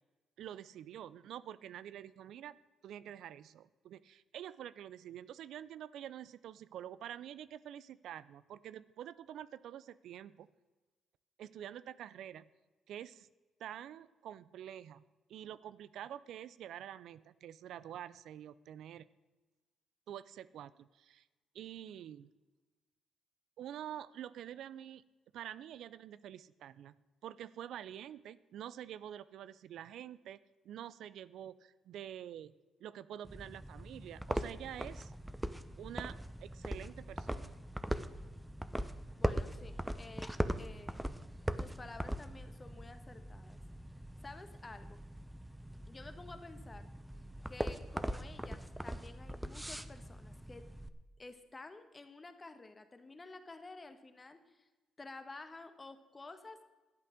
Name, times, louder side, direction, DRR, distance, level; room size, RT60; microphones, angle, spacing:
voice 1, 0.4-2.6 2.8-10.5 11.4-12.4 12.9-13.3 13.6-15.0 15.3-19.1 20.1-21.2 21.5-22.3 23.6-25.0 25.3-27.0 27.2-30.4 30.6-32.5 32.8-35.1 35.8-37.6, right 10 dB, 75° right, 17 dB, 0.4 m, -47 dB
sound 1, 33.2-50.9, right 1 dB, 5° right, 0.7 m, -41 dB
voice 2, 39.2-41.0 41.6-43.6 44.2-45.0 45.9-46.9 47.5-50.7 51.2-54.7 55.0-56.6, left 3 dB, 25° left, 9 dB, 1.3 m, -51 dB
12.0 x 8.4 x 6.5 m, 1.2 s
cardioid pair, 90°, 0 cm